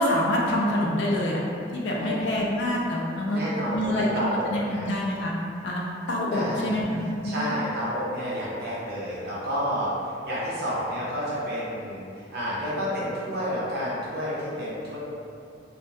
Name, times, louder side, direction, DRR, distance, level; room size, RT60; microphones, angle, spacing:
voice 1, 0.0-1.4 1.7-3.4 3.7-4.1 4.5-5.3 5.6-5.8 6.1-7.5, left 1 dB, 65° left, -3 dB, 0.3 m, -26 dB
voice 2, 3.3-4.9 6.3-15.0, equal, 55° right, -9 dB, 0.7 m, -30 dB
2.2 x 2.1 x 2.6 m, 2.5 s
head